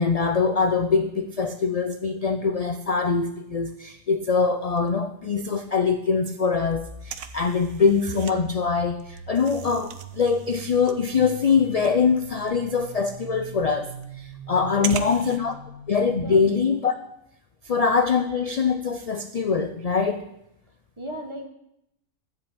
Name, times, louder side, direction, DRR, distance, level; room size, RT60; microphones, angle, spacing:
voice 1, 0.0-13.9 14.2-15.6 15.9-16.9 17.6-20.2, left 5 dB, 55° left, 8 dB, 0.4 m, -23 dB
sound 1, 4.6-5.5 5.8-5.9 6.1-8.4 8.7-15.4, right 9 dB, 80° right, 1.2 m, -39 dB
sound 2, 6.7-16.5, right 4 dB, 60° right, 1.9 m, -42 dB
voice 2, 14.7-15.2 16.2-16.4 21.0-21.5, right 1 dB, 20° right, 4 dB, 1.4 m, -36 dB
13.5 x 5.3 x 8.6 m, 0.81 s
omnidirectional pair, 1.4 m